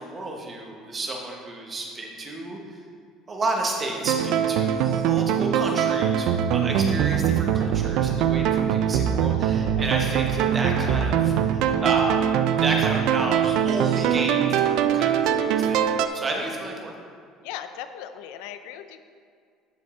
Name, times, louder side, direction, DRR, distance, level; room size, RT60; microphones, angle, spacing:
voice 1, 0.0-2.8 3.3-15.8 16.1-16.9, right 2 dB, 20° right, 1 dB, 0.9 m, -31 dB
sound 1, 4.0-16.1, right 9 dB, 55° right, 0.3 m, -22 dB
voice 2, 17.4-19.0, left 10 dB, 90° left, 9 dB, 0.5 m, -38 dB
11.0 x 5.2 x 3.7 m, 2.2 s
cardioid pair, 180°, 0 cm